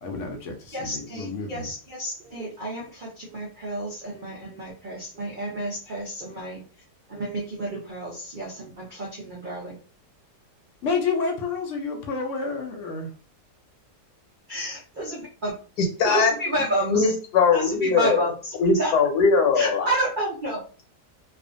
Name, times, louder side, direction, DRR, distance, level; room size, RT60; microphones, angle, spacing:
voice 1, 0.0-1.7 10.8-13.1, left 4 dB, 65° left, 2 dB, 0.8 m, -29 dB
voice 2, 0.7-6.6 7.1-9.8 14.5-17.1 17.5-18.9 19.5-20.6, right 1 dB, 90° right, -3 dB, 0.4 m, -30 dB
voice 3, 16.0-16.3 16.9-18.3 18.6-19.9, left 5 dB, 80° left, 3 dB, 1.3 m, -20 dB
2.5 x 2.4 x 2.5 m, 0.39 s
omnidirectional pair, 1.7 m